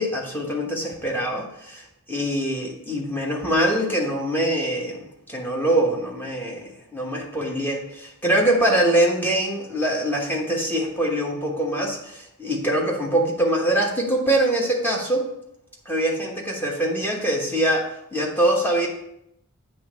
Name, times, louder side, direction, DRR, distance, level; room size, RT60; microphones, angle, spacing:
voice 1, 0.0-15.3 15.8-18.9, right 1 dB, 10° left, -2 dB, 1.2 m, -23 dB
8.0 x 3.2 x 5.1 m, 0.78 s
head